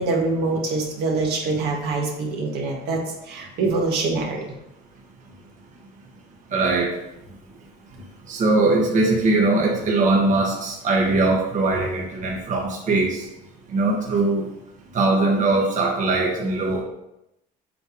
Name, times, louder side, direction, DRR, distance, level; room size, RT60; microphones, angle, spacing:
voice 1, 0.0-4.4, right 3 dB, 75° right, 0 dB, 1.6 m, -24 dB
voice 2, 6.5-6.9 8.3-13.2 13.7-14.5 14.9-16.8, right 2 dB, 50° right, -2 dB, 1.3 m, -21 dB
7.7 x 3.4 x 5.0 m, 0.85 s
cardioid pair, 110°, 17 cm